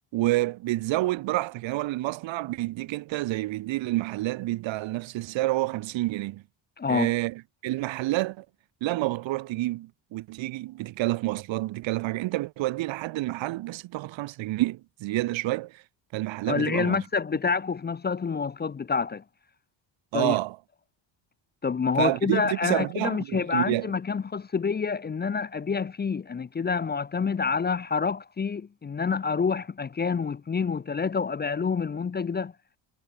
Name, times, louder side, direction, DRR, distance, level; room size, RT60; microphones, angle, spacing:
voice 1, 0.1-6.4 6.9-8.4 8.8-15.8 16.1-17.0 20.1-20.6 22.0-23.9, right 17 dB, 75° right, 1.3 m, -28 dB
voice 2, 6.8-7.1 16.5-19.2 20.1-20.4 21.6-32.5, left 5 dB, 20° left, 0.6 m, -27 dB
cardioid pair, 110°, 46 cm